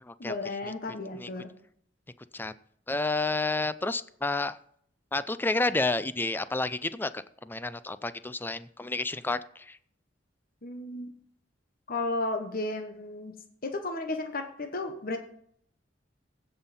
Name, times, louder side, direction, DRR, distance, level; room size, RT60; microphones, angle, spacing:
voice 1, 0.2-1.5 10.6-11.1 11.9-13.4 13.6-15.2, left 2 dB, 50° left, 5 dB, 1.1 m, -33 dB
voice 2, 2.9-4.6 5.1-9.8, left 2 dB, 10° left, 15 dB, 0.4 m, -30 dB
16.0 x 5.6 x 4.2 m, 0.65 s
head